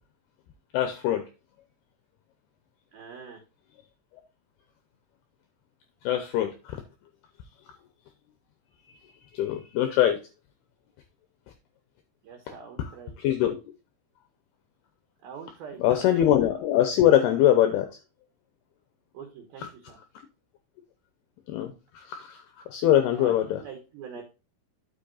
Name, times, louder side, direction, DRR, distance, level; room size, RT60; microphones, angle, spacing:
voice 1, 0.7-1.3 6.0-6.8 8.9-9.0 9.3-10.2 12.8-12.9 13.2-13.6 15.8-18.0 19.6-19.7 21.5-23.6, left 11 dB, 85° left, 8 dB, 2.3 m, -23 dB
voice 2, 2.9-3.4 12.2-13.1 15.2-15.8 19.1-20.0 23.1-23.3 23.6-24.2, right 7 dB, 65° right, 3 dB, 2.7 m, -43 dB
10.0 x 7.1 x 2.5 m, 0.29 s
omnidirectional pair, 5.5 m